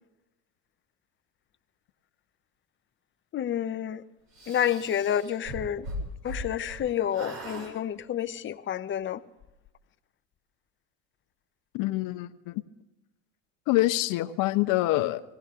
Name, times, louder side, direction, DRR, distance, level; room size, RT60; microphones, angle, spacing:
voice 1, 3.3-4.0 4.5-5.9 6.2-9.2, left 10 dB, 35° left, 0.8 m, -29 dB
sound 1, 4.3-6.8 7.1-7.7, equal, 65° right, 6.1 m, -38 dB
voice 2, 11.7-12.6 13.7-15.2, left 17 dB, 65° left, 1.0 m, -26 dB
19.5 x 16.0 x 3.7 m
supercardioid pair, 105°, 34 cm